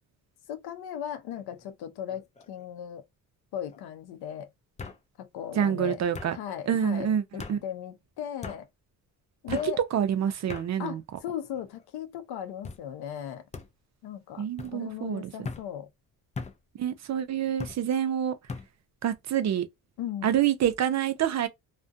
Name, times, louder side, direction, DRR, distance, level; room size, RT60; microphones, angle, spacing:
voice 1, 0.5-3.0 3.5-4.5 5.2-6.0 6.3-8.7 9.4-9.8 10.8-13.5 14.0-14.5 14.7-15.9 20.0-20.4, left 10 dB, 75° left, 0.7 m, -37 dB
sound 1, 1.3-1.7 2.1-2.7 3.7-3.8 4.8-5.0 6.1-6.3 7.4-7.6 8.4-8.6 9.5-9.7 10.5-10.7 11.4-11.9 12.6-12.8 13.5-13.7 14.6-14.8 15.4-15.7 16.4-16.6 17.6-17.8 18.5-18.7, left 4 dB, 20° left, 0.4 m, -39 dB
voice 2, 5.6-6.4 6.7-7.2 7.5-7.6 9.5-9.6 9.9-11.0 14.4-15.5 16.8-18.3 19.0-19.7 20.2-21.5, right 9 dB, 45° right, 0.5 m, -27 dB
2.4 x 2.1 x 2.5 m
cardioid pair, 95°, 38 cm